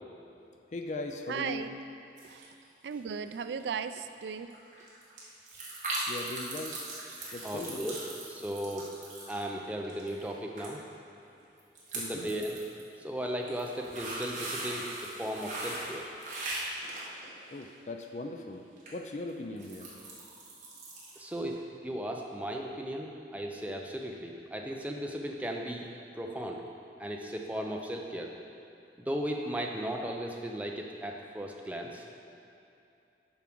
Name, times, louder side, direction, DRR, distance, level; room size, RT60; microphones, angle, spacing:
voice 1, 0.7-1.6 6.1-6.7 7.3-7.9 11.9-12.3 17.5-18.6 18.9-19.9, left 2 dB, 40° left, 4 dB, 0.4 m, -39 dB
voice 2, 1.3-1.8 2.2-2.5 2.8-4.5, right 6 dB, 75° right, 10 dB, 0.3 m, -36 dB
sound 1, 2.2-2.6 2.9-3.3 3.6-3.7 3.9-4.0 4.3-10.3 10.6-10.7 11.0-11.1 11.6-12.8 13.3-17.7 18.8-18.9 19.3-21.3 21.6-21.7, right 2 dB, 45° right, 1.6 m, -39 dB
voice 3, 7.4-8.0 8.3-8.9 9.3-10.8 11.9-12.6 13.0-16.1 21.2-25.9 26.1-26.6 27.0-28.3 29.0-32.0, equal, 10° right, 1 dB, 0.5 m, -36 dB
7.1 x 4.8 x 6.0 m, 2.7 s
head